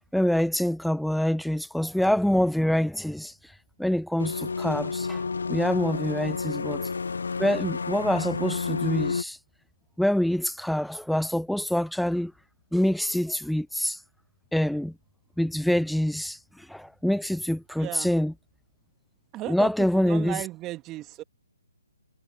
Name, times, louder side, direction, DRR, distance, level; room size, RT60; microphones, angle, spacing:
voice 1, 0.1-3.3 3.8-5.2 5.5-6.9 7.4-9.4 10.0-12.3 12.7-14.0 14.5-14.9 15.4-16.4 16.7-18.3 19.5-20.4, left 1 dB, ahead, 0.7 m, -25 dB
sound 1, 4.2-9.2, left 5 dB, 75° left, 1.0 m, -30 dB
voice 2, 5.8-6.1 17.8-18.1 19.3-21.2, right 16 dB, 20° right, 2.3 m, -36 dB
hypercardioid pair, 145°, 0 cm